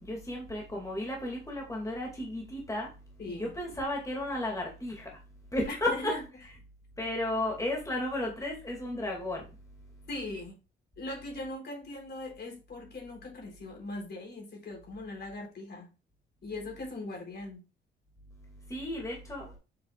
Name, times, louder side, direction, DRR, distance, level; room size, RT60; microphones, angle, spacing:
voice 1, 0.0-2.9 3.2-5.2 5.5-6.1 7.0-9.5 18.7-19.6, left 1 dB, 15° left, 2.5 m, -33 dB
voice 2, 3.2-3.5 5.7-6.2 10.1-10.6 11.0-15.9 16.4-17.7, left 2 dB, 50° left, 4.0 m, -40 dB
7.9 x 5.6 x 2.5 m
cardioid pair, 80°, 21 cm